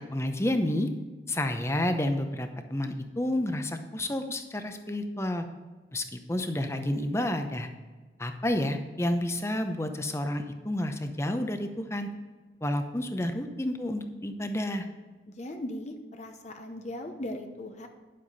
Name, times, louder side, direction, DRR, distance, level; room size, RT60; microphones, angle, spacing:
voice 1, 0.1-0.9 1.3-5.5 5.9-7.7 8.2-12.1 12.6-14.8, left 1 dB, 15° left, 7 dB, 0.7 m, -30 dB
voice 2, 15.3-17.9, left 1 dB, 40° left, 4 dB, 0.9 m, -38 dB
10.5 x 7.6 x 4.1 m, 1.3 s
head